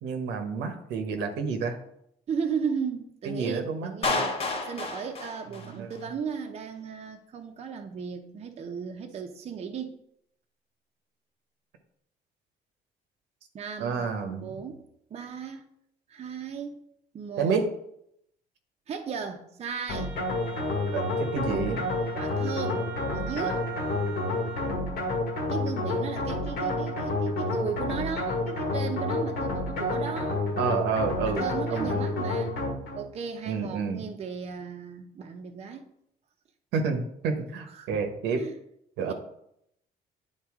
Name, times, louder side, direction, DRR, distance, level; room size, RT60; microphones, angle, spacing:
voice 1, 0.0-1.8 3.2-4.2 5.6-5.9 13.8-14.5 17.4-17.7 20.9-21.8 30.6-32.1 33.5-34.0 36.7-38.4 39.0-39.1, right 5 dB, 85° right, 5 dB, 1.0 m, -29 dB
voice 2, 2.3-4.4 4.7-10.0 13.5-15.7 16.1-16.8 17.1-17.7 18.9-20.2 22.1-23.6 25.5-30.4 31.2-32.6 32.9-35.9 37.7-38.0 38.4-38.6 39.1-39.2, right 6 dB, 40° right, 3 dB, 0.7 m, -35 dB
Clapping, 4.0-6.1, left 3 dB, 35° left, 1.0 m, -30 dB
sound 1, 19.9-33.1, left 2 dB, 70° left, 1.7 m, -29 dB
Wind instrument woodwind instrument, 19.9-24.8, right 5 dB, 10° right, 1.1 m, -43 dB
9.6 x 4.0 x 3.6 m, 0.76 s
cardioid pair, 110°, 17 cm